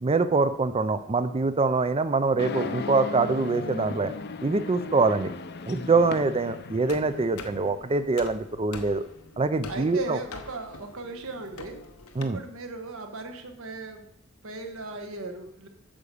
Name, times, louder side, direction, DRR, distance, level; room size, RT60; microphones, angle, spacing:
voice 1, 0.0-4.1 4.4-5.3 5.7-9.0 9.4-10.2 12.2-12.4, right 3 dB, 25° right, 11 dB, 0.5 m, -24 dB
sound 1, 2.4-7.7, left 4 dB, 50° left, 0.6 m, -37 dB
sound 2, 6.9-12.2, left 4 dB, 90° left, 0.9 m, -45 dB
voice 2, 9.7-11.8 12.2-14.1 14.4-15.7, right 3 dB, 70° right, 5 dB, 1.3 m, -37 dB
8.9 x 4.9 x 6.8 m, 0.73 s
head